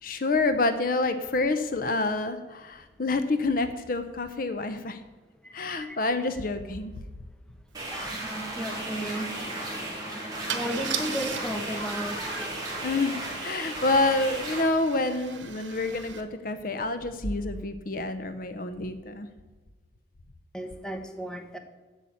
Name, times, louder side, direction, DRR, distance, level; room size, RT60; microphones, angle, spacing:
voice 1, 0.0-5.0 5.5-6.9 12.8-19.3, left 2 dB, 45° left, 10 dB, 0.6 m, -28 dB
voice 2, 5.4-6.0 7.9-13.3 13.5-13.8 20.5-21.6, equal, 5° left, 6 dB, 0.9 m, -36 dB
sound 1, 7.7-14.6, right 1 dB, 20° right, 2.9 m, -35 dB
Car / Engine starting / Idling, 7.9-8.0 8.2-8.5 10.5-16.2, right 8 dB, 80° right, 1.1 m, -39 dB
8.4 x 7.3 x 8.4 m, 1.3 s
head